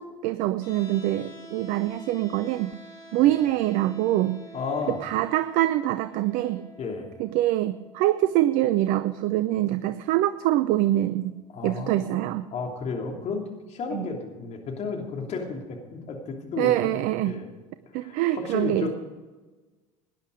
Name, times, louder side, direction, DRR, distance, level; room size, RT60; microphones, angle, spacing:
voice 1, 0.0-2.7 3.1-4.4 5.0-6.6 7.2-11.3 11.6-12.5 13.9-14.0 16.6-17.3 17.9-18.9, right 14 dB, 55° right, 13 dB, 0.6 m, -24 dB
sound 1, 0.6-12.6, right 1 dB, 75° left, 3.6 m, -49 dB
voice 2, 4.5-5.0 6.8-7.1 11.5-17.0 17.2-17.5 17.9-18.9, left 4 dB, 45° left, 1 dB, 3.0 m, -33 dB
18.5 x 10.5 x 5.1 m, 1.3 s
hypercardioid pair, 70°, 16 cm